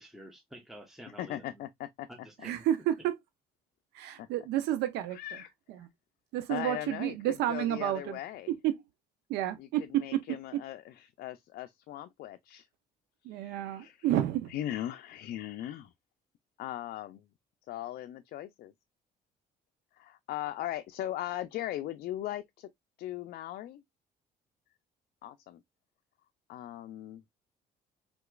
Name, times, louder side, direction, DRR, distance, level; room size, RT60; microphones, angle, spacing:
voice 1, 0.0-1.6 2.1-2.6, equal, ahead, 0.8 m, -50 dB
voice 2, 1.2-2.1 4.2-4.3 5.1-5.5 6.5-8.5 9.6-12.7 13.2-14.1 14.5-15.9 16.6-17.2 17.7-18.7 19.9-22.7 23.0-23.8 25.2-25.6 26.5-27.2, left 13 dB, 60° left, 0.4 m, -39 dB
voice 3, 2.4-3.1 3.9-5.2 5.7-5.9 6.3-8.2 8.6-8.7 9.3-9.8 13.2-14.5, right 12 dB, 85° right, 0.6 m, -30 dB
3.7 x 2.9 x 2.2 m
cardioid pair, 110°, 17 cm